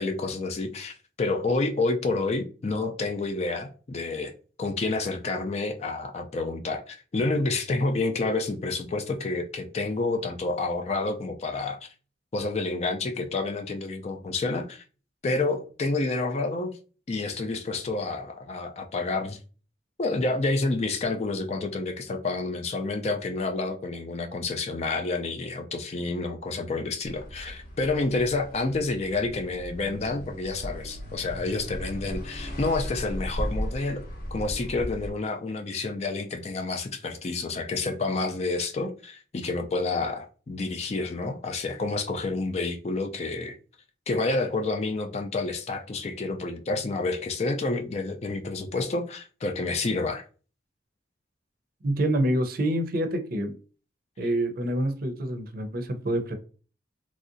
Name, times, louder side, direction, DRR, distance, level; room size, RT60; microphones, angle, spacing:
voice 1, 0.0-4.3 4.6-11.9 12.3-14.8 15.2-16.7 17.1-19.4 20.0-34.0 34.3-43.6 44.1-50.3, left 3 dB, 35° left, 0.4 m, -29 dB
sound 1, 27.0-35.1, equal, 50° left, 0.8 m, -36 dB
voice 2, 51.8-53.5 54.2-56.3, right 1 dB, 55° right, 0.5 m, -27 dB
3.1 x 2.7 x 2.5 m
head